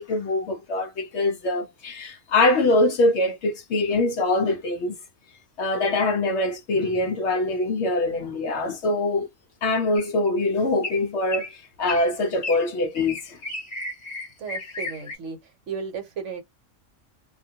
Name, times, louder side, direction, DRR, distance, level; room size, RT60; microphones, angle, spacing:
voice 1, 0.0-5.0 5.6-9.3 9.6-13.4, left 2 dB, 65° left, 0.7 m, -23 dB
sound 1, 9.9-10.3 10.8-11.1 11.3-11.5 11.9-12.1 12.4-12.6 13.0-15.1, left 2 dB, 35° left, 1.0 m, -33 dB
voice 2, 14.4-15.4 15.7-16.4, right 6 dB, 65° right, 1.1 m, -34 dB
2.4 x 2.1 x 2.7 m
omnidirectional pair, 1.4 m